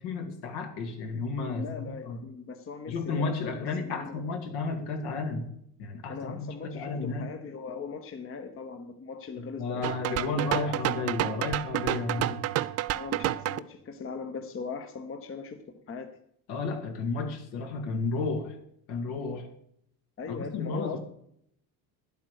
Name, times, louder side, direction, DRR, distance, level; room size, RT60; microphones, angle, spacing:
voice 1, 0.0-2.2 2.9-5.5 5.8-7.2 9.4-12.4 16.5-18.6 18.9-19.5 20.3-21.0, left 4 dB, 70° left, 6 dB, 2.3 m, -32 dB
voice 2, 1.5-3.5 3.8-4.1 6.1-11.1 12.1-12.4 12.9-16.1 20.2-21.0, left 5 dB, 30° left, 7 dB, 1.0 m, -40 dB
sound 1, 9.8-13.6, right 14 dB, 40° right, 0.4 m, -30 dB
10.5 x 8.2 x 6.6 m, 0.71 s
cardioid pair, 130°, 41 cm